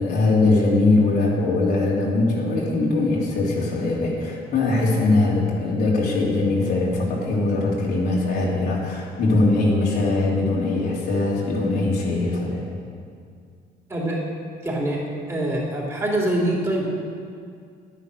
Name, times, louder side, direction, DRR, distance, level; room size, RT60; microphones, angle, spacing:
voice 1, 0.0-12.6, left 2 dB, 70° left, -4 dB, 3.2 m, -21 dB
voice 2, 13.9-14.2 14.6-15.0 15.3-16.9, right 1 dB, 15° right, -4 dB, 3.4 m, -24 dB
10.5 x 10.0 x 6.7 m, 2.2 s
cardioid pair, 110°, 17 cm